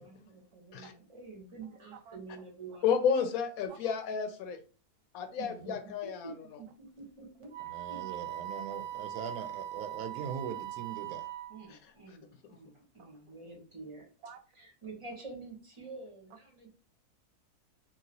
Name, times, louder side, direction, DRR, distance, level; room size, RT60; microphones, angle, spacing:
voice 1, 0.0-2.8 5.4-7.5 7.9-8.1 11.5-14.1 14.5-16.7, right 3 dB, 25° right, -1 dB, 0.8 m, -48 dB
voice 2, 2.8-4.6 5.1-6.3 11.7-11.8, left 7 dB, 70° left, 7 dB, 1.0 m, -31 dB
Wind instrument woodwind instrument, 7.5-11.7, right 12 dB, 60° right, 0.5 m, -41 dB
voice 3, 7.6-11.3 13.0-13.1 14.2-14.4, right 7 dB, 80° right, 7 dB, 1.1 m, -42 dB
2.9 x 2.9 x 2.7 m, 0.38 s
omnidirectional pair, 1.6 m